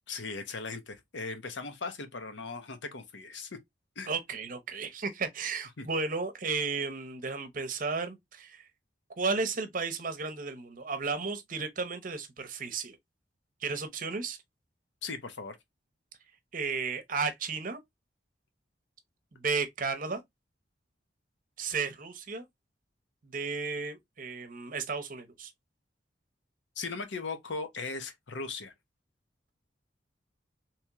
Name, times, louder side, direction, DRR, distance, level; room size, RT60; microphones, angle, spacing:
voice 1, 0.1-3.6 4.0-4.1 5.8-5.9 15.0-15.6 26.8-28.7, left 4 dB, 85° left, 0.8 m, -38 dB
voice 2, 4.1-8.6 9.2-13.0 13.6-14.4 16.5-17.8 19.3-20.2 21.6-22.4 23.2-25.5, right 4 dB, 45° right, 0.7 m, -33 dB
3.5 x 3.0 x 2.9 m
head